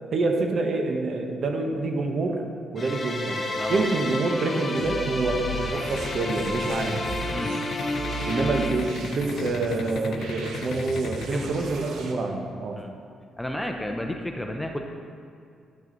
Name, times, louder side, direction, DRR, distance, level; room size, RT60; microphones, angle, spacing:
voice 1, 0.1-2.4 2.7-3.4 3.7-7.0 8.3-12.8, right 3 dB, 50° right, 3 dB, 1.1 m, -27 dB
sound 1, 2.8-8.7, left 2 dB, 35° left, 1.5 m, -31 dB
voice 2, 3.5-3.9 7.3-7.5 11.3-11.7 12.8-12.9 13.4-14.8, left 1 dB, 5° left, 3 dB, 0.7 m, -32 dB
sound 2, 4.8-12.1, right 3 dB, 85° right, 1.1 m, -37 dB
sound 3, 6.0-11.3, left 6 dB, 65° left, 0.5 m, -36 dB
10.5 x 6.1 x 4.0 m, 2.4 s
cardioid pair, 90°, 0 cm